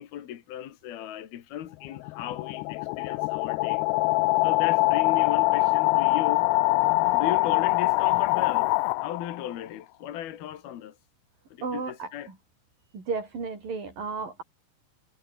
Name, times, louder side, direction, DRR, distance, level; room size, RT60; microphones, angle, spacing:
voice 1, 0.0-3.8 4.4-6.5 7.1-8.7 9.0-11.0 11.5-12.3, left 11 dB, 70° left, 3.6 m, -36 dB
sound 1, 1.7-9.5, left 23 dB, 90° left, 2.7 m, -24 dB
voice 2, 11.6-12.4 12.9-14.4, right 4 dB, 55° right, 8.5 m, -33 dB
omnidirectional pair, 4.7 m